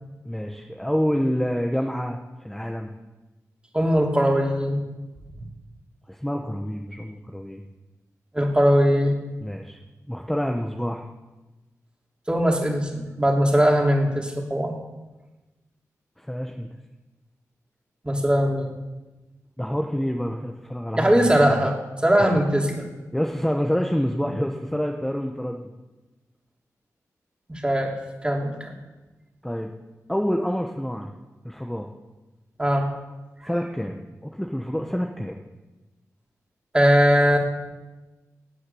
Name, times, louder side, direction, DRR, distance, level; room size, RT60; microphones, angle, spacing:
voice 1, 0.2-2.2 2.4-2.9 6.1-7.6 9.4-9.8 10.1-11.0 16.2-16.7 19.6-21.6 23.1-25.7 29.4-29.7 30.1-31.1 31.4-31.9 33.4-35.4, equal, 5° left, 2 dB, 1.1 m, -27 dB
voice 2, 3.7-4.8 8.3-9.2 12.3-14.8 18.0-18.7 21.0-21.7 22.0-22.9 27.5-27.9 28.2-28.7 32.6-32.9 36.7-37.4, equal, 15° right, 0 dB, 3.1 m, -20 dB
12.5 x 8.8 x 8.5 m, 1.1 s
cardioid pair, 65°, 6 cm